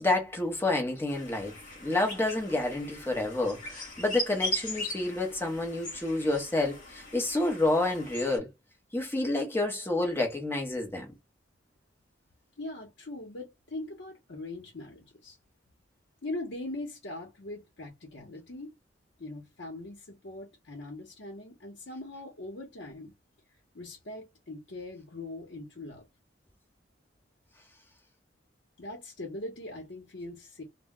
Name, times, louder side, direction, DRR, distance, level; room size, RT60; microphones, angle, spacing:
voice 1, 0.0-1.5 1.8-8.5 8.9-11.1, left 2 dB, 15° left, 0.8 m, -29 dB
sound 1, 1.1-8.4, equal, 45° left, 1.1 m, -39 dB
voice 2, 12.6-15.4 16.2-18.7 19.2-23.1 23.7-26.0 28.8-30.6, left 2 dB, 70° left, 0.8 m, -41 dB
2.1 x 2.1 x 3.6 m
head